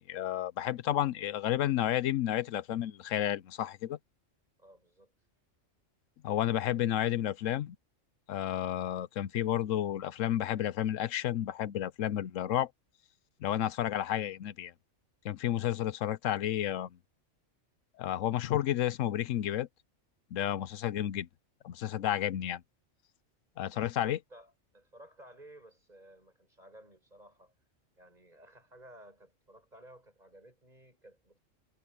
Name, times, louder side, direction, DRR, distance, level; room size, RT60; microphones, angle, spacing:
voice 1, 0.0-4.0 6.2-7.8 8.3-12.7 13.4-14.7 15.2-17.0 18.0-19.7 20.3-21.3 21.6-22.6 23.6-24.2, left 12 dB, 90° left, 1.1 m, -31 dB
voice 2, 4.6-5.1 23.7-27.5 28.0-31.4, right 1 dB, 35° right, 6.8 m, -56 dB
omnidirectional pair, 1.3 m